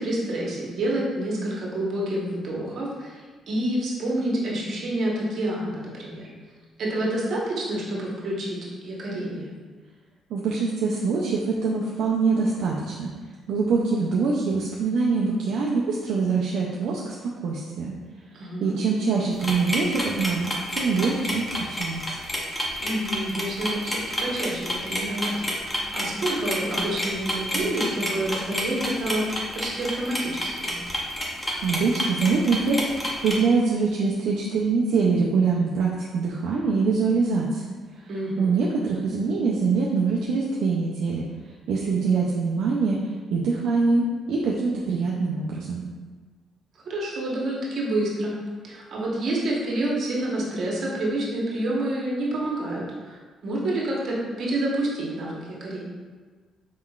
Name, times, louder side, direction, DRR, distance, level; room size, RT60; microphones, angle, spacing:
voice 1, 0.0-3.2 3.5-6.3 6.8-9.5 18.3-18.8 22.8-29.2 29.5-30.8 38.1-38.6 46.9-48.4 48.6-55.8, right 1 dB, 60° right, -4 dB, 1.1 m, -28 dB
voice 2, 10.3-13.1 13.5-17.9 18.6-22.2 31.6-37.6 38.4-41.2 41.7-43.0 43.3-45.8, right 4 dB, 80° right, -3 dB, 0.4 m, -24 dB
sound 1, 19.4-33.4, equal, 15° left, 0.8 m, -29 dB
4.1 x 3.7 x 2.3 m, 1.4 s
cardioid pair, 95°, 0 cm